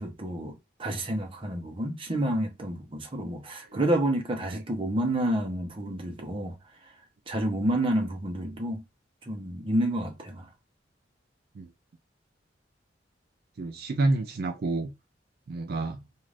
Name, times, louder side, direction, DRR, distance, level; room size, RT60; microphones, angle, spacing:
voice 1, 0.0-6.5 7.3-8.8 9.2-10.5, right 1 dB, 30° right, 0.7 m, -29 dB
voice 2, 13.6-14.9 15.5-16.0, right 2 dB, 55° right, 0.4 m, -29 dB
2.4 x 2.4 x 3.3 m
head